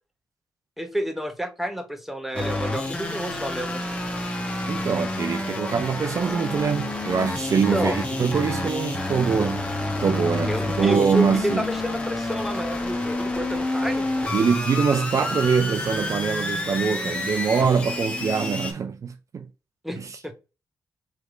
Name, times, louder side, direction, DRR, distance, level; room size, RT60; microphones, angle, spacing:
voice 1, 0.8-3.9 7.5-8.0 10.4-14.1 19.8-20.3, equal, 5° right, 0.9 m, -30 dB
sound 1, 2.3-18.7, left 2 dB, 15° left, 1.1 m, -29 dB
voice 2, 4.7-9.7 10.0-11.7 14.3-19.5 20.0-20.2, right 6 dB, 50° right, 0.4 m, -24 dB
3.2 x 3.0 x 3.8 m
cardioid pair, 60°, 7 cm